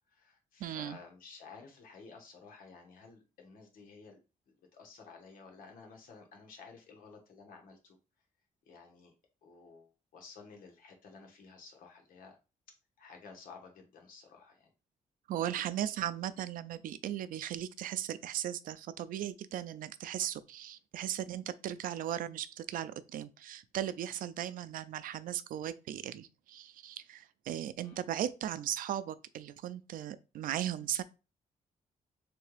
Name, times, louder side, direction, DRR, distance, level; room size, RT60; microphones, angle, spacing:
voice 1, 0.1-4.2 4.5-8.0 8.6-9.1 9.4-12.4 13.0-14.7 27.8-28.0, left 4 dB, 85° left, 1.3 m, -53 dB
voice 2, 0.6-1.0 15.3-31.0, right 11 dB, 75° right, 0.4 m, -37 dB
3.5 x 3.3 x 3.3 m
cardioid pair, 125°, 14 cm